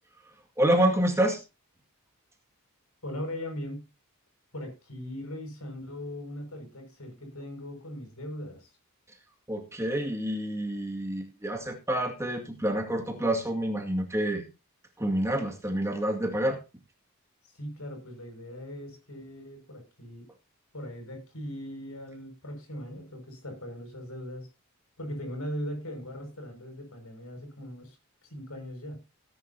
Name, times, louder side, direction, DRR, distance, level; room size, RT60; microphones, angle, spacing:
voice 1, 0.6-1.4 9.5-14.4 15.0-16.6, right 1 dB, 15° right, 1 dB, 2.1 m, -28 dB
voice 2, 3.0-3.8 4.5-8.7 17.5-20.3 20.7-24.5 25.0-28.0 28.2-29.0, equal, 80° left, 4 dB, 6.1 m, -39 dB
18.5 x 10.0 x 2.8 m, 0.28 s
head